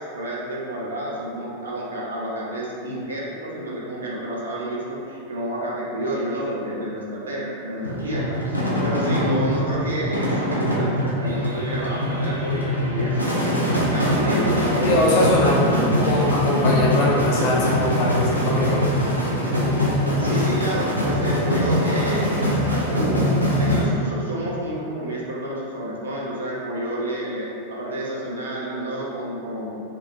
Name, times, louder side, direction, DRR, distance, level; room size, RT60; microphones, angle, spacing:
voice 1, 0.0-8.4 8.8-15.2 15.4-15.8 20.2-23.2 23.5-29.7, right 1 dB, 70° right, -5 dB, 0.4 m, -29 dB
sound 1, 7.8-23.8, equal, 90° left, 0.4 m, -23 dB
sound 2, 13.9-17.9, left 1 dB, 5° right, 0.4 m, -33 dB
voice 2, 14.8-15.7 16.0-18.8, left 1 dB, 45° left, -5 dB, 0.6 m, -22 dB
2.6 x 2.4 x 2.5 m, 2.7 s
figure-of-eight pair, 90°, 0 cm